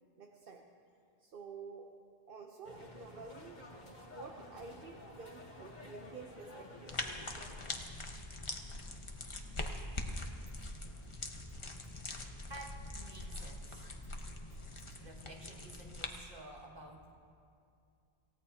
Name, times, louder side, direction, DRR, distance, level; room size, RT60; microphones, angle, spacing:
voice 1, 0.2-0.7 1.2-1.9 2.3-3.7 4.1-6.9, right 4 dB, 60° right, 2 dB, 1.1 m, -50 dB
sound 1, 2.6-7.8, left 1 dB, 50° left, 1.6 m, -52 dB
sound 2, 6.9-16.1, left 2 dB, 30° left, 1.0 m, -43 dB
voice 2, 12.5-14.2 15.0-17.1, right 2 dB, 45° right, -3 dB, 2.2 m, -52 dB
27.0 x 16.5 x 2.9 m, 2.5 s
omnidirectional pair, 1.0 m